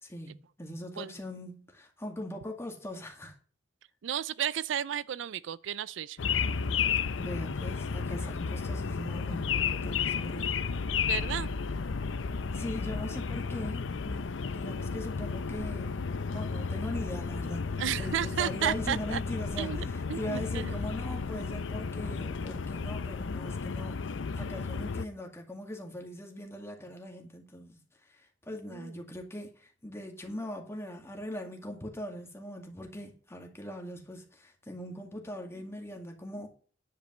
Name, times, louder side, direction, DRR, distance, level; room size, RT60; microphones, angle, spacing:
voice 1, 0.0-3.3 7.2-10.6 12.5-16.0 16.3-27.8 28.5-36.5, left 1 dB, 15° left, 2.1 m, -41 dB
voice 2, 4.0-6.2 11.1-11.5 17.8-19.2 19.6-20.7 28.7-28.9, right 9 dB, 75° right, 0.4 m, -33 dB
sound 1, 6.2-25.1, left 5 dB, 90° left, 0.6 m, -33 dB
10.5 x 5.1 x 7.7 m
head